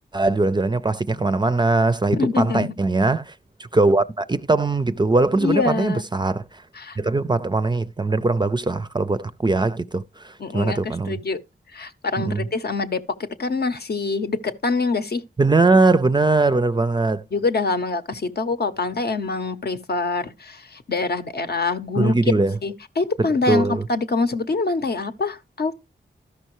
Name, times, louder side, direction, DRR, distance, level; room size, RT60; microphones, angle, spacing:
voice 1, 0.1-3.3 3.6-6.6 7.0-11.2 12.2-12.5 15.4-17.2 22.0-22.6 23.5-23.9, right 3 dB, 25° right, 0.4 m, -21 dB
voice 2, 2.1-2.7 5.4-6.0 6.8-7.0 10.4-11.4 11.7-13.0 13.4-15.2 17.3-22.2 22.6-25.7, left 3 dB, 60° left, 0.7 m, -25 dB
13.0 x 5.5 x 3.0 m
cardioid pair, 60°, 19 cm